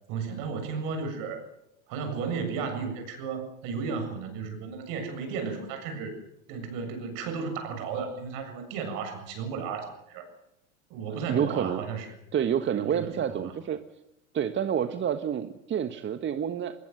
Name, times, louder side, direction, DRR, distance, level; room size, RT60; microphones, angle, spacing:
voice 1, 0.1-1.4 1.9-6.1 6.5-10.3 10.9-12.2 12.7-13.5, right 5 dB, 55° right, 6 dB, 7.5 m, -34 dB
voice 2, 11.3-11.8 12.3-13.8 14.3-16.7, right 8 dB, 30° right, 9 dB, 1.5 m, -28 dB
24.0 x 21.0 x 7.9 m, 0.86 s
figure-of-eight pair, 85°, 41 cm